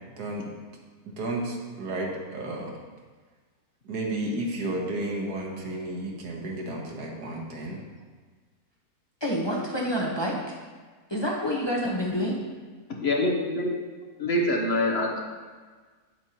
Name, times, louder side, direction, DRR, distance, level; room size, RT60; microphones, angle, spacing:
voice 1, 0.2-0.5 1.1-2.7 3.9-7.8, right 1 dB, 80° right, 0 dB, 1.7 m, -32 dB
voice 2, 9.2-10.5 11.1-12.4, equal, 20° left, -3 dB, 0.7 m, -28 dB
voice 3, 12.9-13.8 14.2-15.2, left 1 dB, 50° left, 0 dB, 0.9 m, -25 dB
8.4 x 7.8 x 2.9 m, 1.4 s
omnidirectional pair, 1.7 m